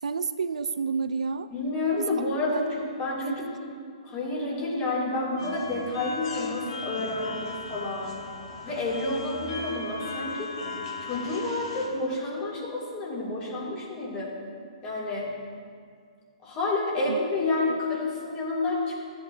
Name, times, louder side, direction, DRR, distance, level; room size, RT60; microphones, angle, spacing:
voice 1, 0.0-1.5 2.0-2.1 2.5-2.7 3.2-3.5 17.0-17.2 17.7-17.8, right 5 dB, 80° right, 12 dB, 0.3 m, -30 dB
voice 2, 1.5-3.5 4.0-8.3 8.6-10.5 11.0-14.3 14.8-15.3 16.4-18.9, left 2 dB, 30° left, -5 dB, 2.4 m, -29 dB
sound 1, 5.4-11.9, left 3 dB, 50° left, 1.6 m, -37 dB
13.5 x 7.7 x 2.6 m, 2.1 s
hypercardioid pair, 130°, 4 cm